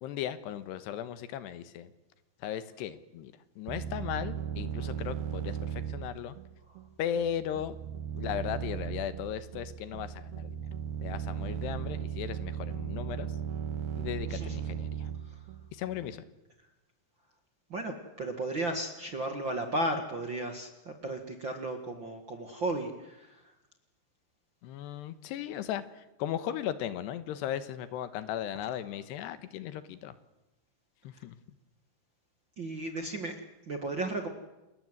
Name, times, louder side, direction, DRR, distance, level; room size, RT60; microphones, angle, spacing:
voice 1, 0.0-1.9 2.4-6.4 7.0-7.8 8.1-10.7 11.0-13.4 14.0-15.1 15.7-16.2 24.6-30.1 31.0-31.4, left 10 dB, 85° left, 13 dB, 3.3 m, -37 dB
sound 1, 3.7-16.2, right 9 dB, 70° right, 2.7 m, -37 dB
voice 2, 17.7-20.7 21.0-23.3 32.6-33.3 33.7-34.3, right 2 dB, 45° right, 5 dB, 1.7 m, -34 dB
29.0 x 21.5 x 8.0 m, 0.98 s
omnidirectional pair, 4.9 m